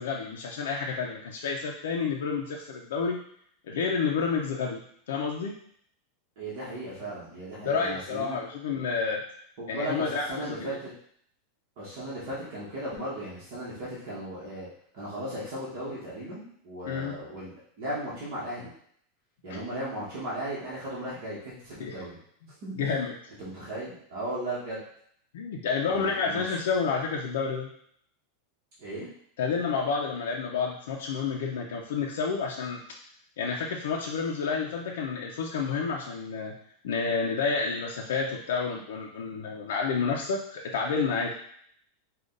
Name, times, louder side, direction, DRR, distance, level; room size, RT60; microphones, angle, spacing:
voice 1, 0.0-3.2 3.7-4.8 5.1-5.6 7.6-9.2 9.7-10.8 16.8-17.2 21.8-21.9 22.7-23.2 25.3-27.7 29.4-32.8 33.4-36.5 36.8-41.3, left 5 dB, 80° left, -1 dB, 0.6 m, -29 dB
voice 2, 6.4-8.4 9.6-10.9 11.8-14.7 14.9-18.7 19.4-22.2 22.6-22.9 23.4-24.8 25.9-26.6 28.8-29.1, right 1 dB, 45° right, -8 dB, 1.4 m, -36 dB
5.0 x 2.4 x 3.9 m, 0.65 s
supercardioid pair, 180°, 0 cm